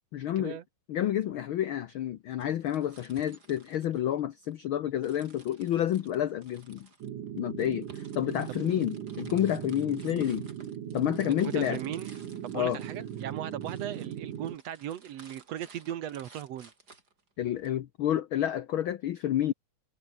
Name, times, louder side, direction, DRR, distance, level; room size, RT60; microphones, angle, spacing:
voice 1, 0.1-0.6 0.9-6.9 7.3-10.5 10.9-11.8 12.5-12.8 17.4-19.5, left 11 dB, 80° left, 1.1 m, -29 dB
sound 1, 2.3-4.6 5.0-17.7, right 3 dB, 30° right, 4.2 m, -56 dB
sound 2, 7.0-14.6, right 9 dB, 90° right, 3.5 m, -39 dB
voice 2, 11.4-12.2 12.4-16.7, right 11 dB, 65° right, 2.1 m, -38 dB
omnidirectional pair, 3.5 m